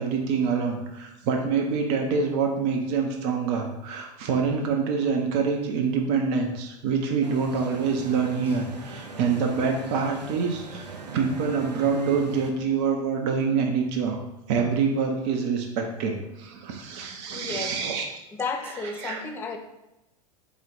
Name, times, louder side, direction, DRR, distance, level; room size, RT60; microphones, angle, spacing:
voice 1, 0.0-14.2 14.5-18.0 19.0-19.2, right 5 dB, 45° right, 2 dB, 0.7 m, -26 dB
sound 1, 7.2-12.5, right 3 dB, 90° right, 0.5 m, -41 dB
voice 2, 17.3-17.8 18.3-19.6, left 4 dB, 10° left, 4 dB, 0.4 m, -33 dB
4.0 x 3.0 x 4.0 m, 0.94 s
figure-of-eight pair, 90°, 21 cm